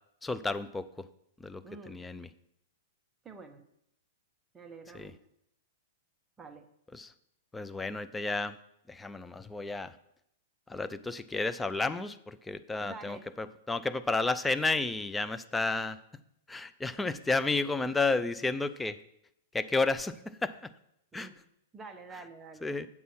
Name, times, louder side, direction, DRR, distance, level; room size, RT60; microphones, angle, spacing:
voice 1, 0.2-1.1 1.4-2.3 4.9-5.1 6.9-7.1 7.5-8.6 8.9-9.9 10.7-16.0 16.5-19.0 19.5-20.1 20.4-20.5 21.1-21.3 22.6-22.9, left 3 dB, 5° left, 12 dB, 0.3 m, -32 dB
voice 2, 1.6-2.0 3.2-3.6 4.5-5.2 6.4-6.6 12.8-13.2 21.1-21.4 21.7-22.6, right 4 dB, 10° right, 5 dB, 0.8 m, -47 dB
8.4 x 6.2 x 5.5 m, 0.77 s
hypercardioid pair, 155°, 0 cm